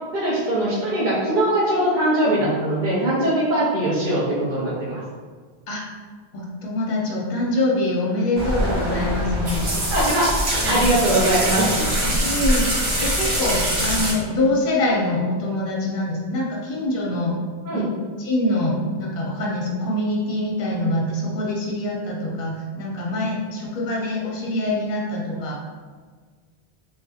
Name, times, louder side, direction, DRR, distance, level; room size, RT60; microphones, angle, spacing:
voice 1, 0.1-5.0 9.9-11.9 17.6-17.8, right 1 dB, 55° right, -8 dB, 0.7 m, -21 dB
voice 2, 6.3-9.8 12.1-17.4 17.7-17.9 18.2-25.6, left 1 dB, 50° left, -3 dB, 0.7 m, -24 dB
sound 1, 8.4-14.1, equal, 75° right, 1.1 m, -23 dB
3.4 x 2.8 x 2.3 m, 1.5 s
omnidirectional pair, 1.1 m